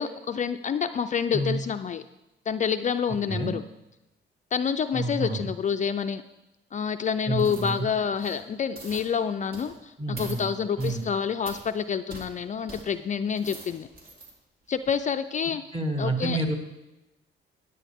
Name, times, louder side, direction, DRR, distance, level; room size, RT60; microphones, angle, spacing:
voice 1, 0.0-2.0 2.5-3.6 4.5-6.2 6.7-13.9 14.7-15.6 16.0-16.4, left 7 dB, 40° left, 9 dB, 0.4 m, -28 dB
voice 2, 4.9-5.5 7.3-7.9 10.0-11.1 15.7-16.5, right 2 dB, 30° right, 3 dB, 2.2 m, -29 dB
sound 1, 7.4-7.7 8.1-8.4 8.7-9.1 9.5-9.8 10.1-10.4 10.8-11.0 11.4-11.6 12.1-12.3 12.7-12.8 13.2-14.3 14.8-14.9, right 2 dB, 50° right, 2.5 m, -43 dB
13.0 x 9.9 x 3.6 m, 1.0 s
cardioid pair, 90°, 20 cm